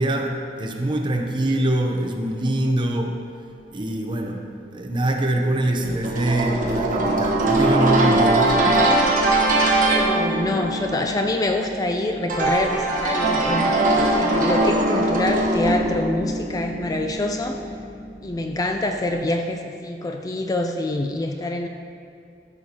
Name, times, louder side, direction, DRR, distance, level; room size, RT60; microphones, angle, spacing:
voice 1, 0.0-3.2 3.7-4.4 4.7-8.9, right 1 dB, 25° right, 2 dB, 0.7 m, -24 dB
sound 1, 5.8-19.0, right 2 dB, 50° right, 1.3 m, -22 dB
voice 2, 9.8-17.6 18.2-21.7, left 1 dB, 20° left, 4 dB, 0.3 m, -26 dB
13.5 x 6.6 x 2.9 m, 2.4 s
head